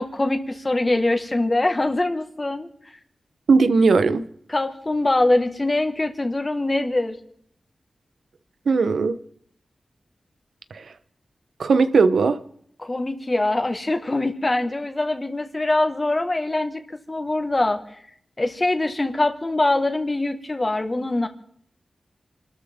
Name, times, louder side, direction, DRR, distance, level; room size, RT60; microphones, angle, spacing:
voice 1, 0.0-2.7 4.5-7.2 12.8-17.8 18.4-21.3, left 2 dB, 25° left, 1.8 m, -23 dB
voice 2, 3.5-4.3 8.7-9.2 10.7-10.8 11.6-12.4, right 4 dB, 85° right, 1.0 m, -18 dB
29.0 x 13.0 x 3.7 m
wide cardioid pair, 110°, 0 cm